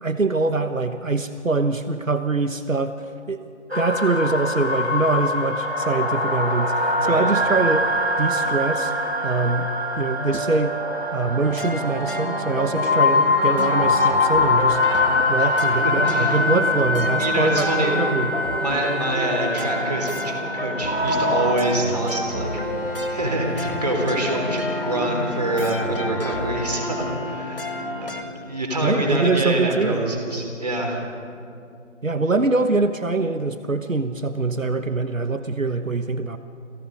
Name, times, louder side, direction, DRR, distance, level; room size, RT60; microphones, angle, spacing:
voice 1, 0.0-3.4 3.7-7.9 8.2-8.9 9.2-9.7 10.0-10.8 11.1-14.8 15.3-18.3 28.8-30.0 32.0-36.4, right 3 dB, 80° right, 9 dB, 1.2 m, -23 dB
sound 1, 3.7-21.5, left 2 dB, 50° right, 2.9 m, -23 dB
sound 2, 11.4-28.2, left 1 dB, 45° left, 1.8 m, -31 dB
voice 2, 15.8-16.4 17.2-17.9 18.6-22.5 22.8-31.1, right 1 dB, 30° right, 0 dB, 3.8 m, -26 dB
Bowed string instrument, 22.0-28.2, left 3 dB, 10° left, 3.6 m, -33 dB
29.0 x 28.0 x 4.0 m, 2.5 s
figure-of-eight pair, 165°, 39 cm